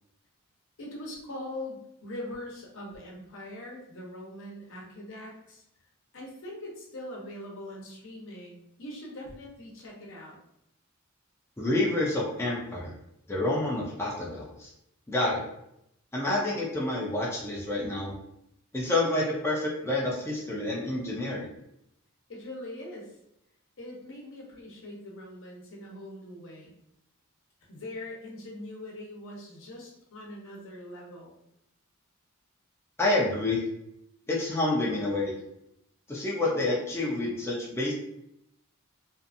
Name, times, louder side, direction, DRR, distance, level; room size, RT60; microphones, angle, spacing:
voice 1, 0.8-5.6 6.1-10.4 22.3-23.1 23.8-26.7 27.7-31.3, left 1 dB, 65° left, -2 dB, 0.8 m, -42 dB
voice 2, 11.6-12.9 13.3-14.7 15.1-15.4 16.1-18.1 18.7-21.5 33.0-33.6 34.3-35.4 36.1-37.9, left 2 dB, 10° left, -5 dB, 0.5 m, -28 dB
2.6 x 2.4 x 2.5 m, 0.79 s
head